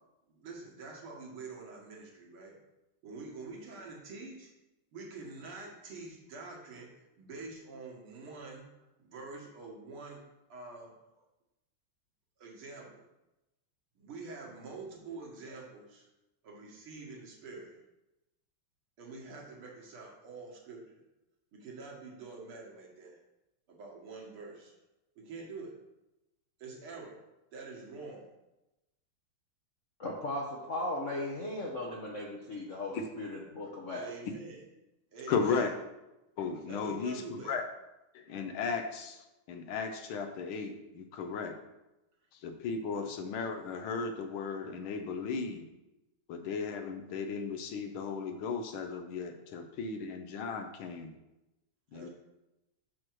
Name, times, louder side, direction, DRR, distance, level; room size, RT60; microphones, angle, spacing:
voice 1, 0.3-2.6 3.0-4.5 4.9-10.2 10.5-10.9 12.4-13.1 14.0-16.1 16.4-17.8 19.0-21.0 21.5-23.2 23.7-24.8 25.2-25.7 26.6-27.2 27.5-28.3 33.9-34.6 35.1-35.7 36.7-37.6 42.9-43.1 51.9-52.1, right 3 dB, 75° right, -2 dB, 2.4 m, -46 dB
voice 2, 30.0-34.0, left 1 dB, 50° left, -2 dB, 0.9 m, -37 dB
voice 3, 35.3-35.7 36.4-37.6 38.1-41.6 42.3-45.7 46.3-51.1 51.9-52.1, left 5 dB, 75° left, 6 dB, 1.6 m, -35 dB
6.3 x 6.1 x 4.6 m, 0.96 s
omnidirectional pair, 2.4 m